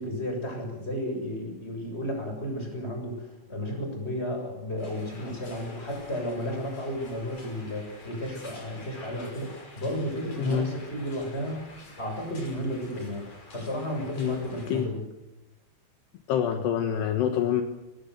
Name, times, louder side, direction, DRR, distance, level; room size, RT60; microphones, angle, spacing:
voice 1, 0.0-11.6 12.0-13.3 13.5-15.0, equal, 10° left, 3 dB, 7.2 m, -33 dB
sound 1, 4.8-14.9, left 2 dB, 35° left, 6.7 m, -48 dB
voice 2, 16.3-17.6, left 9 dB, 70° left, 6 dB, 3.3 m, -26 dB
24.0 x 20.5 x 8.2 m, 0.92 s
omnidirectional pair, 5.4 m